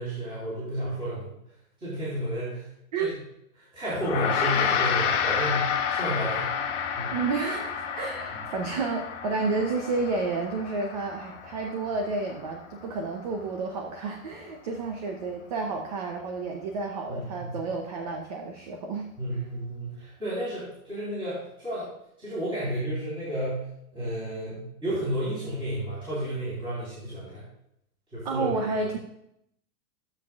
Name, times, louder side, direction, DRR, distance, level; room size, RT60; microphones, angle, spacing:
voice 1, 0.0-1.4 1.8-2.6 3.0-3.1 3.7-6.5 7.0-7.1 17.1-17.6 19.2-21.9 22.2-27.4 28.1-28.5, right 1 dB, 10° right, -9 dB, 3.4 m, -32 dB
Gong, 4.0-13.6, left 7 dB, 50° left, 1.5 m, -30 dB
voice 2, 7.1-19.1 28.2-29.0, right 3 dB, 30° right, 3 dB, 0.6 m, -30 dB
15.5 x 7.5 x 2.4 m, 0.77 s
supercardioid pair, 175°, 44 cm